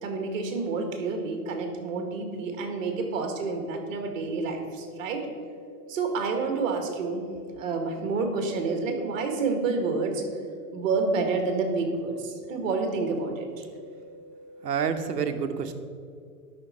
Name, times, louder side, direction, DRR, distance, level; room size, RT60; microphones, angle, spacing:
voice 1, 0.0-5.3 5.9-7.3 7.6-10.2 10.7-13.6, right 4 dB, 55° right, 4 dB, 1.8 m, -29 dB
sound 1, 4.8-14.8, left 1 dB, 60° left, 2.1 m, -48 dB
voice 2, 14.6-15.7, right 6 dB, 90° right, 8 dB, 1.0 m, -28 dB
12.0 x 5.7 x 4.2 m, 2.3 s
hypercardioid pair, 145°, 47 cm